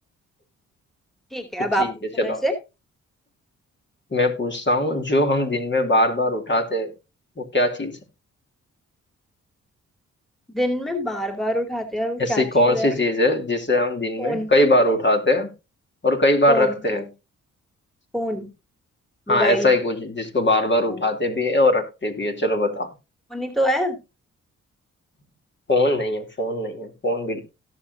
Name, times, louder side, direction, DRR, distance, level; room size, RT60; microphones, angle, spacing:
voice 1, 1.3-1.9 2.2-2.5 10.5-12.9 14.2-14.5 16.5-17.1 18.1-18.5 19.3-19.7 20.9-21.0 23.3-24.0, equal, ahead, 7 dB, 2.5 m, -25 dB
voice 2, 4.1-6.9 7.4-8.0 12.2-15.5 16.0-17.0 19.3-22.9 25.7-27.4, left 1 dB, 35° left, 4 dB, 2.9 m, -21 dB
17.5 x 6.6 x 2.7 m, 0.27 s
supercardioid pair, 50°, 33 cm